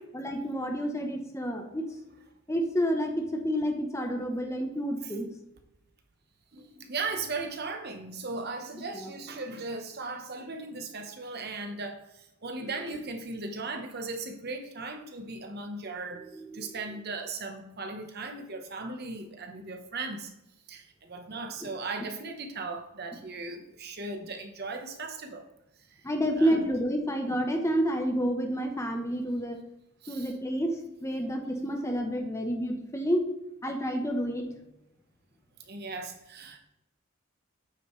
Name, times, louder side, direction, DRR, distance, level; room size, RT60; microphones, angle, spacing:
voice 1, 0.1-1.8 2.5-5.3 8.9-9.1 12.6-13.0 16.1-16.8 21.6-21.7 26.0-29.6 30.1-33.2 33.6-34.5, equal, 15° left, 4 dB, 0.9 m, -29 dB
voice 2, 6.5-16.3 16.5-20.3 20.7-25.4 26.4-26.7 30.0-30.3 35.6-36.6, right 3 dB, 50° right, 5 dB, 1.1 m, -37 dB
8.9 x 7.7 x 3.2 m, 0.88 s
head